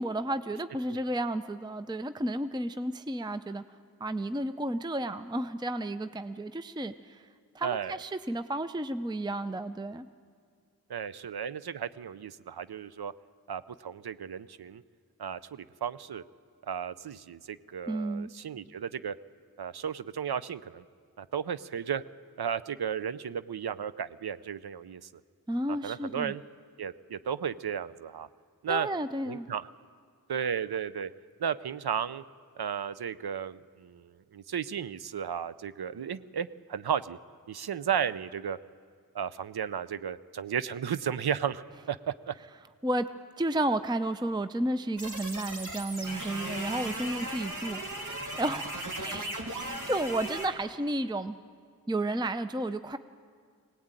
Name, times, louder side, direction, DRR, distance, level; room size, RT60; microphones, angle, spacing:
voice 1, 0.0-3.6 4.0-7.2 7.5-10.1 17.9-18.3 25.5-26.3 28.7-29.5 42.8-43.1 43.4-51.4 51.9-53.0, right 1 dB, 10° right, 11 dB, 0.5 m, -32 dB
voice 2, 7.6-8.0 10.9-13.1 13.5-14.8 15.2-16.2 16.7-19.2 19.6-20.8 21.2-22.0 22.4-25.1 25.7-26.4 26.8-28.3 28.6-28.9 29.3-29.7 30.3-31.1 31.4-32.2 32.6-37.2 37.5-38.6 39.1-42.3, right 8 dB, 85° right, 16 dB, 0.6 m, -34 dB
sound 1, 45.0-50.5, right 1 dB, 55° right, 2.8 m, -37 dB
21.5 x 18.0 x 9.0 m, 2.1 s
wide cardioid pair, 45°, 37 cm